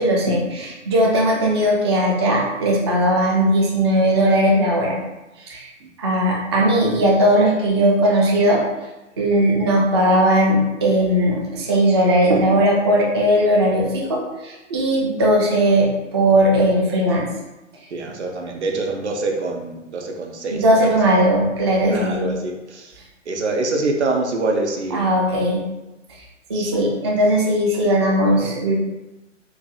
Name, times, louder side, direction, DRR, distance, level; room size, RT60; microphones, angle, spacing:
voice 1, 0.0-5.0 5.4-5.7 6.0-8.6 9.2-17.3 20.5-22.3 24.9-25.6 26.5-28.7, right 1 dB, 25° right, -3 dB, 0.4 m, -18 dB
voice 2, 17.9-21.0 21.9-23.0 23.3-25.1 26.5-26.7, right 3 dB, 60° right, 2 dB, 0.7 m, -25 dB
4.6 x 2.5 x 2.3 m, 1.0 s
figure-of-eight pair, 120°, 38 cm